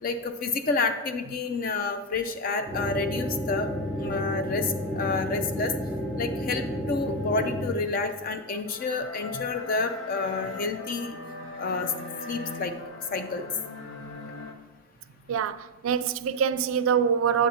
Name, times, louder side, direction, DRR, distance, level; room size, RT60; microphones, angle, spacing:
voice 1, 0.0-3.7 4.0-5.7 6.2-11.2 11.6-11.9 12.3-12.7 13.1-13.5, left 4 dB, 45° left, 0.4 m, -29 dB
sound 1, 2.7-7.7, equal, 10° left, 2.8 m, -31 dB
sound 2, 2.9-14.5, left 3 dB, 65° left, 0.7 m, -42 dB
voice 2, 15.3-17.5, right 7 dB, 80° right, 0.3 m, -25 dB
8.3 x 8.0 x 2.8 m
head